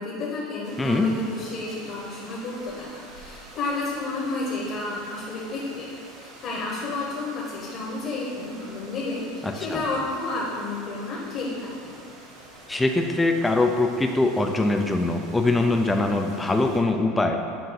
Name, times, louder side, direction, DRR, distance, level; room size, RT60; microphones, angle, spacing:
voice 1, 0.0-5.9 6.2-11.9, left 2 dB, 40° left, -4 dB, 1.1 m, -31 dB
sound 1, 0.6-16.8, right 2 dB, 50° right, 1.3 m, -47 dB
voice 2, 0.8-1.1 9.4-9.8 12.7-17.4, left 2 dB, 10° left, 4 dB, 0.3 m, -23 dB
7.6 x 2.6 x 5.7 m, 2.3 s
supercardioid pair, 150°, 0 cm